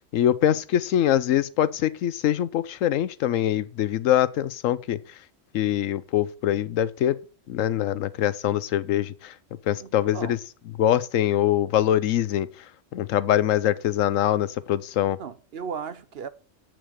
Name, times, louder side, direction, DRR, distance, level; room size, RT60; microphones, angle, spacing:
voice 1, 0.1-5.0 5.5-7.2 7.5-9.3 9.7-10.4 10.8-12.5 12.9-15.2, left 11 dB, 85° left, 1.0 m, -23 dB
voice 2, 9.8-10.4 15.2-16.3, right 6 dB, 55° right, 0.9 m, -36 dB
8.4 x 6.2 x 6.4 m
omnidirectional pair, 1.3 m